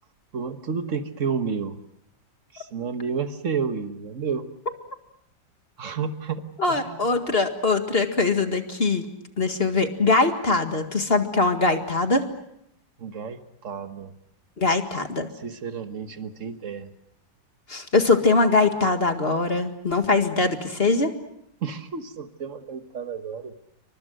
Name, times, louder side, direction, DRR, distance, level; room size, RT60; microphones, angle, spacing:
voice 1, 0.3-1.8 2.5-4.5 5.8-7.1 13.0-14.1 15.3-16.9 21.6-23.5, right 6 dB, 45° right, 9 dB, 1.6 m, -31 dB
voice 2, 6.6-9.0 9.4-12.3 14.6-15.3 17.7-21.1, left 3 dB, 30° left, 6 dB, 2.0 m, -22 dB
28.5 x 25.0 x 6.4 m, 0.76 s
omnidirectional pair, 2.0 m